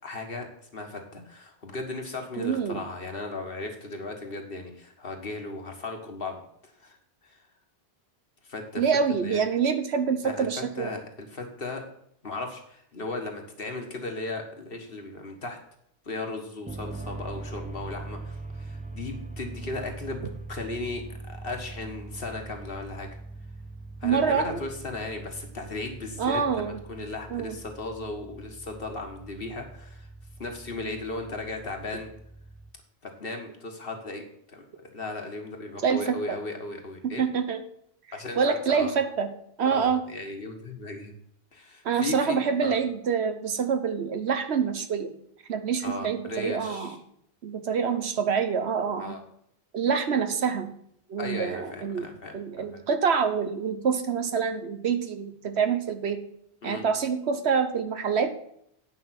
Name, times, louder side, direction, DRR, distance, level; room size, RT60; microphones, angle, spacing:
voice 1, 0.0-0.5 0.7-7.0 7.3-7.4 8.5-8.8 9.1-9.4 10.2-10.5 10.8-11.8 12.2-15.6 16.1-23.1 24.0-30.1 30.4-32.1 33.0-34.2 34.5-37.3 38.1-39.0 39.7-41.1 41.5-42.8 45.8-47.0 49.0-49.2 51.2-52.8 56.6-56.8, left 2 dB, 60° left, 3 dB, 1.8 m, -36 dB
voice 2, 2.4-2.8 8.8-10.9 24.0-24.6 26.2-26.8 27.3-27.6 35.8-36.4 37.2-37.6 38.4-39.3 39.6-40.0 41.8-45.1 45.5-46.9 47.4-49.1 49.7-50.7 51.1-52.1 52.3-56.2 56.6-58.4, right 6 dB, 75° right, 9 dB, 1.2 m, -26 dB
sound 1, 16.7-32.7, right 2 dB, 10° right, 0.4 m, -42 dB
9.7 x 5.5 x 5.9 m, 0.70 s
omnidirectional pair, 1.1 m